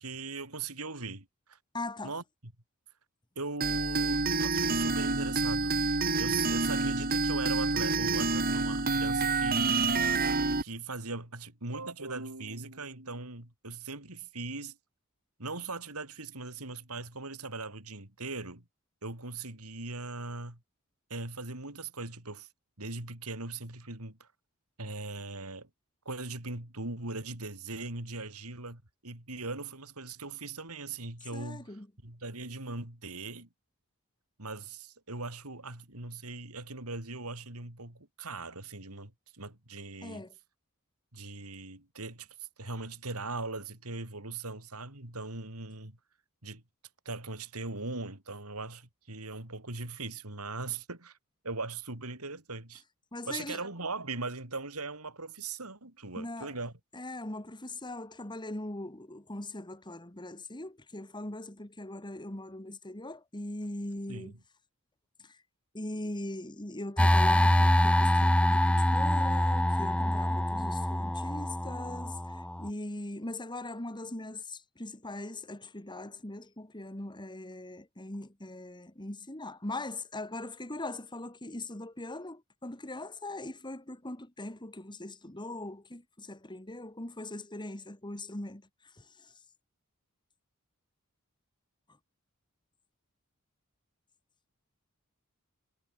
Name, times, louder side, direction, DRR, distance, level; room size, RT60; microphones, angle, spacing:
voice 1, 0.0-1.6 2.0-2.5 3.3-5.8 6.2-9.9 10.6-14.8 15.4-18.6 19.0-20.6 21.1-22.5 22.8-24.3 24.8-25.7 26.0-31.8 32.0-33.5 34.4-40.2 41.1-46.0 46.4-46.6 47.0-51.2 51.4-52.8 53.3-56.7 64.1-64.4, right 3 dB, 80° right, 4.9 m, -40 dB
voice 2, 1.7-2.1 31.3-31.9 40.0-40.3 53.1-53.6 56.2-56.5 56.9-64.4 65.2-65.4 65.7-88.6 89.0-89.1, left 2 dB, 20° left, 2.3 m, -40 dB
sound 1, 3.6-10.6, right 3 dB, 45° right, 3.7 m, -28 dB
sound 2, 67.0-72.7, left 1 dB, 5° left, 0.7 m, -25 dB
head